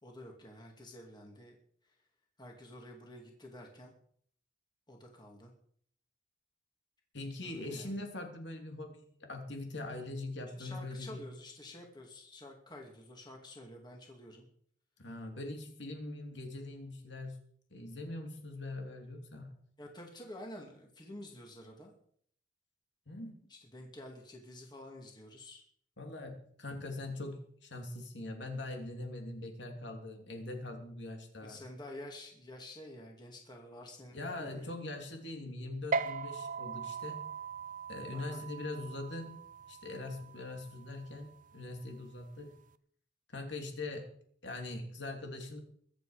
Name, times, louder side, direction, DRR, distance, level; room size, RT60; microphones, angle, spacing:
voice 1, 0.0-1.6 2.4-3.9 4.9-5.5 7.4-7.9 10.6-14.5 19.8-21.9 23.5-25.6 31.4-34.7 38.1-38.5, left 1 dB, 20° left, 1 dB, 2.4 m, -49 dB
voice 2, 7.1-11.2 15.0-17.4 17.7-19.5 23.1-23.3 26.0-31.6 34.1-37.4 37.9-39.4 39.7-42.6 43.3-44.1 44.4-45.6, left 2 dB, 60° left, 3 dB, 3.0 m, -42 dB
sound 1, 35.9-42.7, right 4 dB, 40° right, 0.6 m, -40 dB
23.0 x 8.3 x 5.0 m, 0.62 s
head